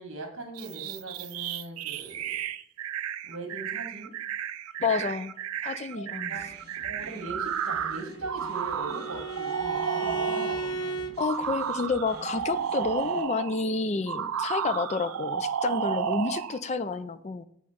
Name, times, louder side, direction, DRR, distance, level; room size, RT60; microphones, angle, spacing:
voice 1, 0.0-2.4 3.2-4.1 5.0-5.1 6.0-6.5 6.8-11.2, right 2 dB, 65° right, 2 dB, 1.6 m, -40 dB
sound 1, 0.6-10.7 11.2-13.6 14.1-16.6, right 8 dB, 90° right, 0.4 m, -32 dB
voice 2, 4.8-5.3 5.6-6.4 11.2-17.4, left 4 dB, 30° left, 13 dB, 0.3 m, -29 dB
sound 2, 6.3-13.2, right 1 dB, 50° right, 1.5 m, -50 dB
Bowed string instrument, 7.6-11.2, right 3 dB, 65° left, 0.7 m, -35 dB
7.7 x 3.1 x 5.5 m, 0.68 s
head